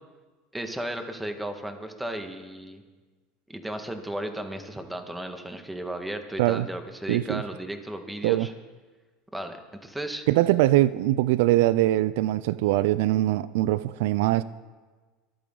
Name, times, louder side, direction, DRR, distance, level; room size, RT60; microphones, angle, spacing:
voice 1, 0.5-2.8 3.5-8.5 9.3-10.3, right 1 dB, 5° right, 6 dB, 1.8 m, -35 dB
voice 2, 7.1-7.4 8.2-8.5 10.3-14.4, right 15 dB, 75° right, 17 dB, 0.4 m, -22 dB
25.0 x 8.7 x 3.9 m, 1.3 s
hypercardioid pair, 95°, 0 cm